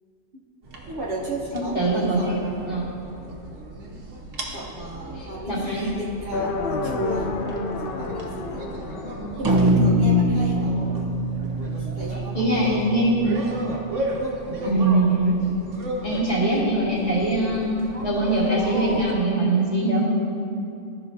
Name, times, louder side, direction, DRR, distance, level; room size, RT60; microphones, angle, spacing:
sound 1, 0.6-19.1, right 1 dB, 80° right, 1.3 m, -35 dB
voice 1, 0.9-2.4 4.5-7.3 7.8-8.6 9.4-10.7 11.8-13.1, right 1 dB, 50° right, -6 dB, 1.2 m, -34 dB
voice 2, 1.5-2.4 2.7-2.8 5.2-5.9 12.3-13.3 14.6-15.4 16.0-20.1, right 2 dB, 35° left, -8 dB, 2.1 m, -22 dB
sound 2, 6.3-10.3, left 3 dB, 60° left, 0.7 m, -30 dB
sound 3, 9.4-13.9, equal, 30° right, 0.4 m, -23 dB
13.5 x 5.7 x 2.7 m, 2.7 s
omnidirectional pair, 1.3 m